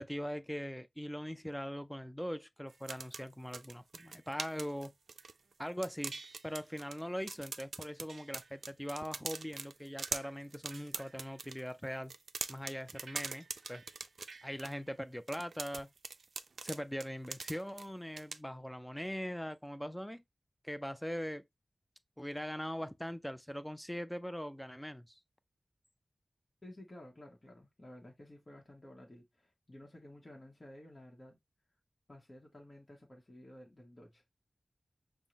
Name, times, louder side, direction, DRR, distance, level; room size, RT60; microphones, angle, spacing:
voice 1, 0.0-4.9 5.6-12.1 12.5-13.8 14.4-15.9 16.6-20.2 20.6-21.4 22.2-25.2, equal, 5° left, 0.4 m, -41 dB
sound 1, 2.7-5.5 5.8-7.0 7.3-11.6 12.0-14.7 15.3-17.9 18.2-18.4, right 4 dB, 85° right, 0.3 m, -42 dB
voice 2, 26.6-31.4 32.1-34.2, left 1 dB, 35° left, 1.0 m, -54 dB
5.4 x 2.1 x 3.0 m
wide cardioid pair, 90°, 0 cm